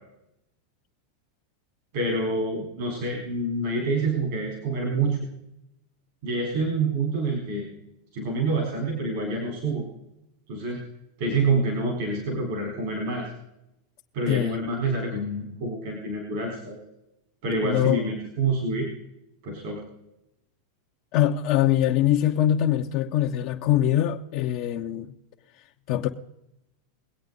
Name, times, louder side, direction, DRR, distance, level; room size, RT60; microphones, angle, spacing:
voice 1, 1.9-5.2 6.2-7.7 8.1-9.9 10.5-10.8 11.2-13.3 14.1-16.8 17.4-18.9 19.4-19.8, right 3 dB, 65° right, 4.2 m, -27 dB
voice 2, 14.3-14.6 17.6-18.1 21.1-25.1 25.9-26.1, left 12 dB, 55° left, 0.9 m, -23 dB
22.5 x 8.5 x 4.0 m
hypercardioid pair, 120°, 0 cm